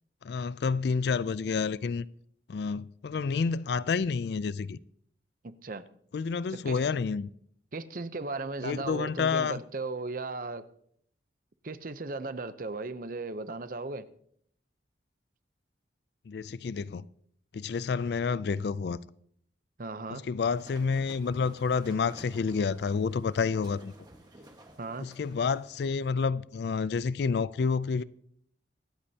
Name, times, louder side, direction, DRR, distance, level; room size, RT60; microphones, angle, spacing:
voice 1, 0.2-2.1 2.5-4.8 6.1-7.3 8.6-9.6 16.3-17.1 17.5-19.0 20.1-23.9 25.0-28.0, left 5 dB, 60° left, 0.3 m, -29 dB
voice 2, 5.4-5.8 6.5-6.8 7.7-10.6 11.6-14.0 19.8-20.2 24.8-25.1, right 3 dB, 50° right, 0.7 m, -36 dB
sound 1, 20.4-26.1, right 1 dB, 20° right, 1.4 m, -54 dB
24.5 x 8.6 x 2.8 m
head